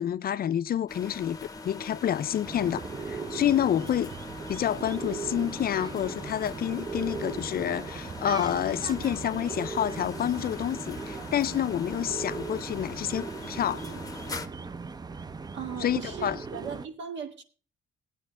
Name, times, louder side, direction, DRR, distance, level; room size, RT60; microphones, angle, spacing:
voice 1, 0.0-1.4 1.6-4.1 4.5-13.9 15.8-16.4, left 10 dB, 50° left, 0.4 m, -28 dB
sound 1, 0.9-14.5, left 3 dB, 20° left, 0.9 m, -42 dB
sound 2, 2.4-16.9, right 4 dB, 20° right, 0.5 m, -38 dB
voice 2, 15.5-17.4, right 7 dB, 65° right, 1.7 m, -38 dB
16.5 x 9.0 x 3.6 m
cardioid pair, 90°, 20 cm